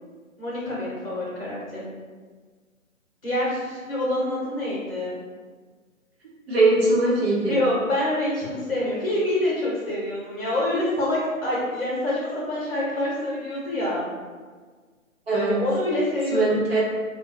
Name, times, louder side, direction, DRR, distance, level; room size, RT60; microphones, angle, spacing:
voice 1, 0.4-1.9 3.2-5.2 7.4-14.0 15.3-16.4, left 1 dB, 45° left, -6 dB, 0.9 m, -26 dB
voice 2, 6.5-7.6 15.3-15.6 16.3-16.8, right 2 dB, 45° right, -7 dB, 0.9 m, -21 dB
2.6 x 2.2 x 2.5 m, 1.5 s
figure-of-eight pair, 145°, 41 cm